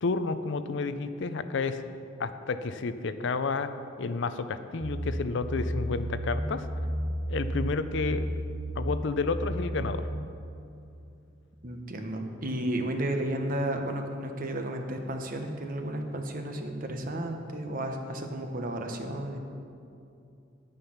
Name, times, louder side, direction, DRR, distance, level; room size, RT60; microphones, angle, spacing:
voice 1, 0.0-1.8 2.2-3.7 4.0-6.7 7.3-8.2 8.8-10.0, left 4 dB, 65° left, 11 dB, 0.5 m, -30 dB
sound 1, 4.8-10.1, equal, 70° right, 1.7 m, -33 dB
voice 2, 11.6-19.4, right 1 dB, 45° right, 4 dB, 1.0 m, -33 dB
9.7 x 8.9 x 5.8 m, 2.6 s
head